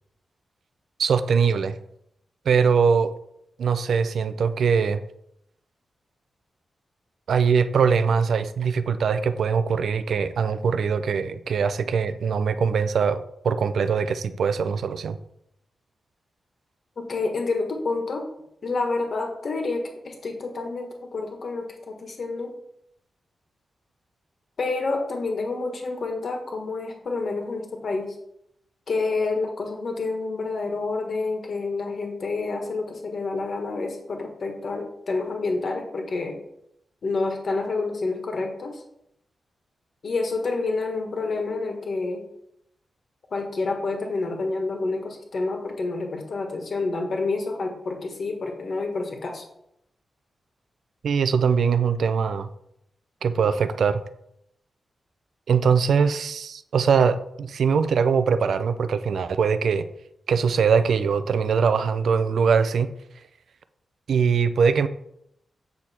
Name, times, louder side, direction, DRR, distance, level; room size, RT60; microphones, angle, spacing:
voice 1, 1.0-1.8 2.5-3.1 3.6-5.0 7.3-15.2 51.0-52.5 53.2-54.0 55.5-59.9 60.3-62.9 64.1-64.9, right 6 dB, 70° right, 11 dB, 0.5 m, -22 dB
voice 2, 17.0-18.3 18.6-22.5 24.6-28.1 28.9-36.4 37.0-38.8 40.0-42.2 43.3-49.4, left 3 dB, 45° left, 3 dB, 1.6 m, -28 dB
8.3 x 6.4 x 4.4 m, 0.77 s
wide cardioid pair, 165°, 0 cm